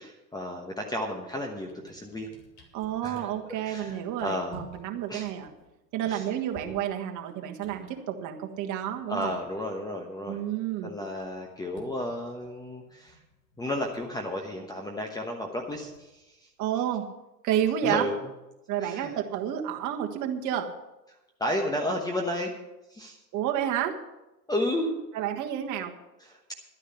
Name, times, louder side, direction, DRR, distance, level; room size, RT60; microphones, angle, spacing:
voice 1, 0.0-2.3 3.0-3.3 3.6-4.6 5.1-5.3 6.1-6.3 6.6-6.7 9.1-10.4 10.8-13.2 13.6-16.5 17.8-18.1 18.8-19.1 21.4-22.5 22.9-23.2 24.5-25.0 26.2-26.4, left 1 dB, 10° left, 2 dB, 1.1 m, -32 dB
sound 1, 1.1-1.3 1.6-10.4 10.7-16.6, left 2 dB, 35° left, 2.7 m, -55 dB
voice 2, 2.7-5.5 5.9-9.3 10.3-10.9 16.6-17.1 17.4-18.1 18.7-20.7 23.3-24.0 25.1-25.9, right 10 dB, 35° right, 3 dB, 1.6 m, -30 dB
12.0 x 9.9 x 5.7 m, 1.0 s
hypercardioid pair, 105°, 49 cm